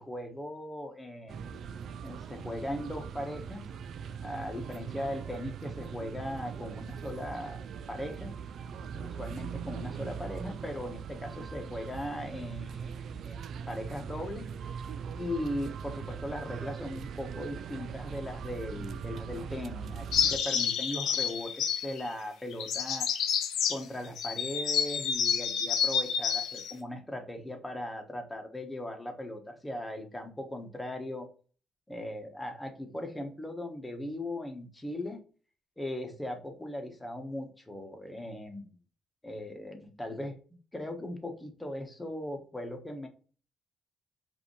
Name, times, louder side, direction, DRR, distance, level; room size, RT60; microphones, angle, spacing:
voice 1, 0.0-1.5 2.0-3.6 4.2-8.3 8.9-14.9 15.2-23.1 23.7-31.3 31.9-35.2 35.8-38.8 39.2-40.4 40.7-43.1, left 1 dB, 15° left, 4 dB, 1.2 m, -38 dB
sound 1, 1.3-20.4, right 7 dB, 65° right, 0.3 m, -41 dB
sound 2, 20.1-22.1 22.5-23.8 24.2-26.7, left 7 dB, 75° left, 0.7 m, -29 dB
4.9 x 2.8 x 3.2 m, 0.38 s
cardioid pair, 90°, 0 cm